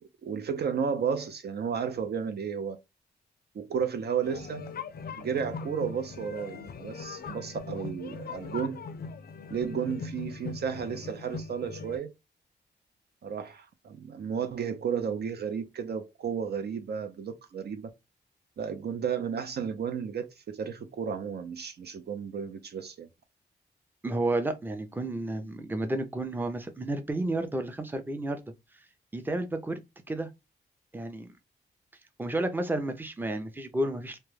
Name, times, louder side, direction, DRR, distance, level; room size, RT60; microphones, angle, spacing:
voice 1, 0.0-2.8 3.5-4.7 5.2-8.8 9.5-12.1 13.2-17.9 18.6-23.1, right 7 dB, 60° right, 0.5 m, -33 dB
sound 1, 4.2-12.0, left 5 dB, 55° left, 0.4 m, -40 dB
voice 2, 24.0-28.4 29.1-30.3 30.9-31.3 32.2-34.2, right 2 dB, 10° right, 0.6 m, -31 dB
2.2 x 2.0 x 3.1 m
cardioid pair, 55°, 19 cm